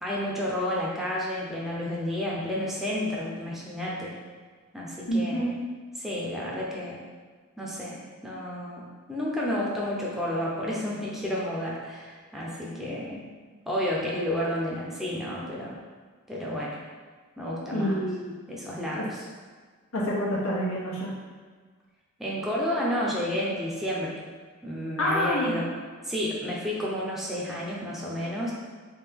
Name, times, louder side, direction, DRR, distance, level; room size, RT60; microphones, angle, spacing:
voice 1, 0.0-4.2 4.7-5.6 6.0-7.0 7.6-13.3 13.7-15.8 16.3-16.8 17.4-18.0 18.5-19.2 22.2-24.2 24.6-25.8 26.0-28.5, left 1 dB, ahead, -5 dB, 0.5 m, -31 dB
voice 2, 5.1-5.5 17.7-18.4 18.9-19.1 19.9-21.1 25.0-25.6, equal, 85° left, -4 dB, 0.9 m, -27 dB
3.4 x 2.7 x 3.4 m, 1.5 s
head